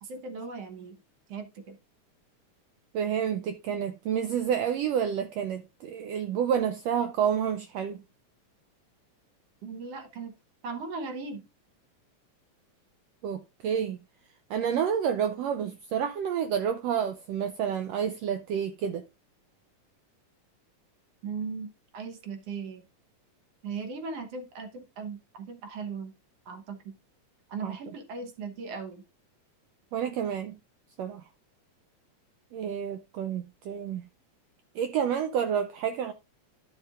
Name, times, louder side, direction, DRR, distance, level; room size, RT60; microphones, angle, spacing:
voice 1, 0.0-1.0 1.3-1.8 9.6-10.3 10.6-11.4 21.2-22.8 23.6-26.1 26.5-27.0 27.5-29.0, right 4 dB, 60° right, 1.9 m, -38 dB
voice 2, 2.9-8.0 13.2-14.0 14.5-19.0 27.6-27.8 29.9-30.6 31.0-31.2 32.5-34.1 34.7-36.1, right 8 dB, 80° right, 1.5 m, -29 dB
12.5 x 6.6 x 2.4 m
omnidirectional pair, 3.4 m